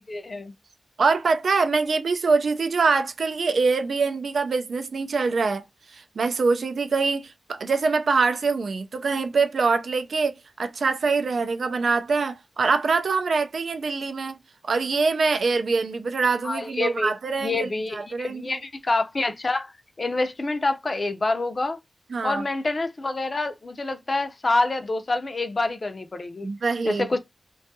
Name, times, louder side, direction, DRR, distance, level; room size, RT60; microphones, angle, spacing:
voice 1, 0.1-0.5 16.4-17.1 17.4-19.7 20.0-21.8 22.2-26.5 26.9-27.2, left 2 dB, 45° left, 0.4 m, -27 dB
voice 2, 1.0-5.6 5.9-14.4 14.6-18.6 22.1-22.4 26.4-27.1, right 4 dB, 85° right, 0.4 m, -24 dB
2.6 x 2.3 x 2.6 m
wide cardioid pair, 90°, 0 cm